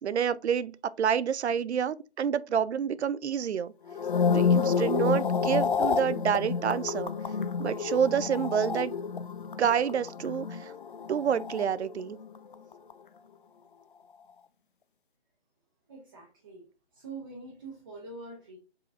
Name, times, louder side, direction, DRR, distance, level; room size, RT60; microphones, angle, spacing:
voice 1, 0.0-3.7 4.3-7.1 7.6-8.9 9.6-10.7 11.1-12.2, right 8 dB, 80° right, 0.5 m, -28 dB
sound 1, 3.9-12.3 12.5-12.9, left 6 dB, 50° left, 0.4 m, -29 dB
voice 2, 15.9-18.6, right 3 dB, 20° right, 0.8 m, -45 dB
5.0 x 4.1 x 2.4 m
figure-of-eight pair, 160°, 33 cm